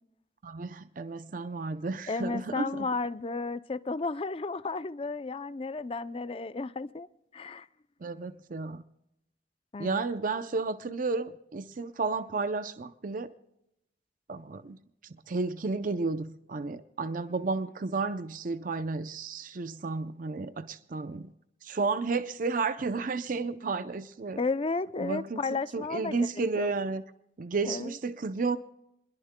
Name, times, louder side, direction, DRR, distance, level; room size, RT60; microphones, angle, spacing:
voice 1, 0.4-2.9 8.0-8.8 9.8-13.3 14.3-14.8 15.0-21.3 21.6-24.4 25.0-27.0 27.4-28.6, right 4 dB, 50° right, 0.6 m, -32 dB
voice 2, 2.1-7.1 7.3-7.7 9.7-10.0 24.4-26.7 27.7-27.9, left 3 dB, 30° left, 0.5 m, -33 dB
28.0 x 21.5 x 2.2 m
head